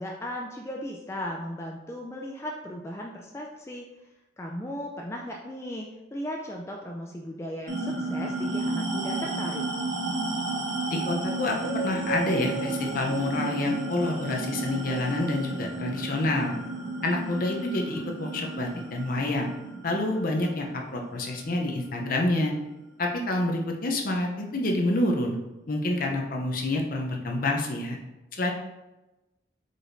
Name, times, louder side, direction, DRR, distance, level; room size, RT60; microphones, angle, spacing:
voice 1, 0.0-3.9 4.4-9.7, equal, 15° left, 0 dB, 0.3 m, -36 dB
sound 1, 7.7-22.5, right 2 dB, 65° right, 1.2 m, -32 dB
voice 2, 10.9-11.6 11.8-16.6 17.0-19.5 19.8-22.5 23.0-25.4 25.7-28.0 28.3-28.5, left 2 dB, 50° left, 1 dB, 0.7 m, -28 dB
4.8 x 4.1 x 2.6 m, 1.0 s
head